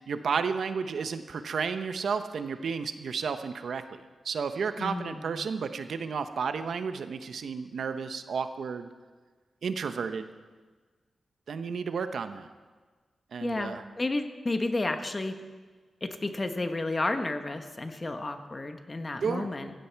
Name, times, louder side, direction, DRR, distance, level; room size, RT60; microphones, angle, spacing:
voice 1, 0.1-8.9 9.6-10.3 11.5-12.5 13.3-13.8 19.2-19.5, right 5 dB, 75° right, 9 dB, 0.8 m, -32 dB
voice 2, 4.8-5.5 13.4-15.3 16.0-19.7, left 2 dB, 25° left, 7 dB, 1.1 m, -32 dB
15.5 x 15.5 x 4.6 m, 1.4 s
wide cardioid pair, 115°, 0 cm